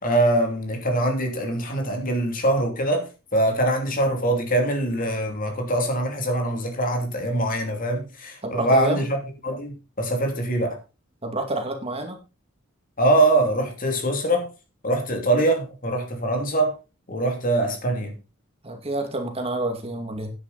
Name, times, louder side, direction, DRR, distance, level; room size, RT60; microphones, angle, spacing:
voice 1, 0.0-9.2 9.4-10.8 13.0-14.5 14.8-16.7 17.1-18.2, right 1 dB, 45° left, 2.9 m, -23 dB
voice 2, 8.4-9.0 11.2-12.2 18.6-20.3, right 2 dB, 30° right, 2.3 m, -28 dB
10.5 x 9.6 x 4.1 m
head